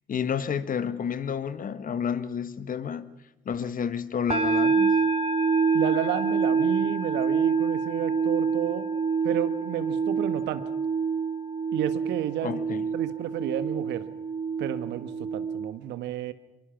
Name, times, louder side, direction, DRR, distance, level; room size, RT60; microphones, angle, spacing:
voice 1, 0.1-3.1 3.4-5.0 12.4-12.9, left 7 dB, 45° left, 1.5 m, -30 dB
sound 1, 4.3-15.7, right 5 dB, 30° right, 2.0 m, -26 dB
voice 2, 5.7-8.9 9.2-10.6 11.7-12.6 12.9-14.1 14.6-16.3, right 11 dB, 70° right, 1.3 m, -31 dB
24.0 x 22.5 x 5.9 m
hypercardioid pair, 55°, 19 cm